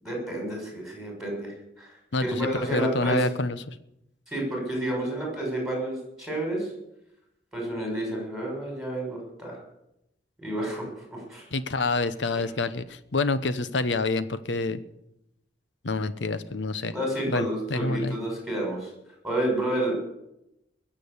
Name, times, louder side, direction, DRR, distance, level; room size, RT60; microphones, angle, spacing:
voice 1, 0.0-2.0 2.2-3.3 4.3-6.7 7.5-9.6 10.4-11.4 12.4-12.5 16.9-18.9 19.2-19.9, right 1 dB, ahead, 0 dB, 6.3 m, -30 dB
voice 2, 2.1-3.8 11.5-14.8 15.8-16.9 17.3-18.2, left 3 dB, 75° left, 13 dB, 0.9 m, -27 dB
21.5 x 7.7 x 6.9 m, 0.84 s
head